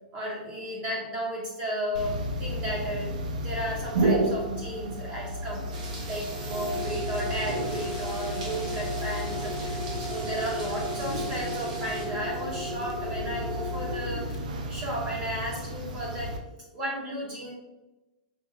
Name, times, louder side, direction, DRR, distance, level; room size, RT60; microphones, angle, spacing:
voice 1, 0.1-14.3 14.7-16.4 16.7-17.5, right 1 dB, 20° right, -4 dB, 0.7 m, -34 dB
sound 1, 1.9-16.4, equal, 70° right, 0.7 m, -32 dB
sound 2, 5.7-12.1, right 2 dB, 85° right, 1.4 m, -43 dB
sound 3, 7.7-13.9 14.2-14.4, left 6 dB, 40° left, 0.5 m, -51 dB
5.3 x 2.0 x 3.7 m, 1.0 s
supercardioid pair, 175°, 4 cm